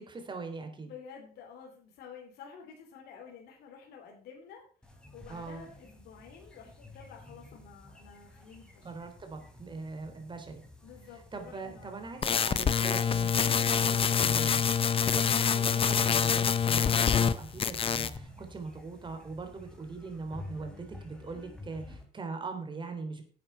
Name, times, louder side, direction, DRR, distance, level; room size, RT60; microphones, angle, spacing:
voice 1, 0.0-0.9 5.3-5.6 8.8-10.6 11.3-23.2, right 4 dB, 30° right, 6 dB, 3.5 m, -41 dB
voice 2, 0.8-4.6 4.9-8.9 10.8-12.3, left 6 dB, 75° left, 1 dB, 3.2 m, -50 dB
sound 1, 4.8-22.0, left 1 dB, 5° left, 3.3 m, -51 dB
sound 2, 12.2-17.3 17.6-18.2, left 7 dB, 35° left, 0.7 m, -26 dB
10.5 x 8.7 x 5.6 m, 0.42 s
cardioid pair, 110°, 17 cm